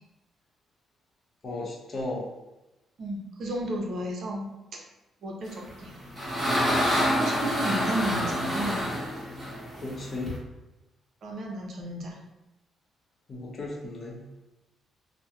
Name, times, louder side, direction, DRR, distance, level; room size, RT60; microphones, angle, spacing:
voice 1, 1.4-2.3 9.7-10.3 13.3-14.2, left 2 dB, 45° left, -3 dB, 0.6 m, -35 dB
voice 2, 3.0-4.5 5.2-5.9 7.0-8.9 11.2-12.2, right 1 dB, 60° right, 0 dB, 0.5 m, -33 dB
sound 1, 5.7-10.4, equal, 15° right, 1.2 m, -27 dB
2.7 x 2.0 x 2.3 m, 0.99 s
cardioid pair, 90°, 0 cm